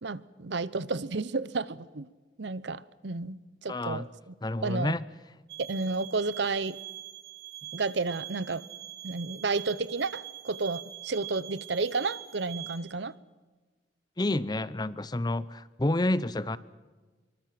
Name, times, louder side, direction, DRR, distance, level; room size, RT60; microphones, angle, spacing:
voice 1, 0.0-2.1 2.4-3.4 3.6-4.3 4.6-4.9 5.7-6.8 7.7-8.6 9.0-13.1, right 3 dB, 70° right, 0.8 m, -31 dB
voice 2, 3.7-4.1 4.4-5.0 14.2-16.6, left 1 dB, 20° left, 0.6 m, -29 dB
sound 1, 5.5-12.8, right 14 dB, 55° right, 3.5 m, -43 dB
25.5 x 24.0 x 6.0 m
head